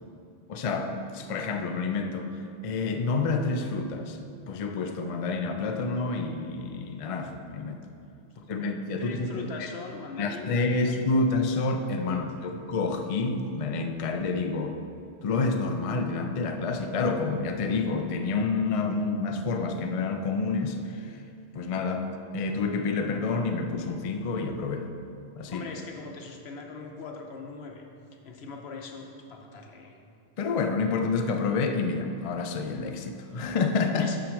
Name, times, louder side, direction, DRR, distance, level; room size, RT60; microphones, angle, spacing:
voice 1, 0.5-2.3 2.6-4.2 4.5-7.8 8.5-9.5 10.2-14.8 15.2-21.1 21.5-22.1 22.3-24.9 25.4-25.6 30.4-34.1, left 3 dB, 50° left, 6 dB, 0.4 m, -28 dB
voice 2, 8.2-11.1 12.1-12.3 25.5-27.8 28.2-30.0 34.0-34.2, left 4 dB, 80° left, 2 dB, 1.1 m, -41 dB
5.9 x 5.0 x 6.2 m, 2.5 s
omnidirectional pair, 1.1 m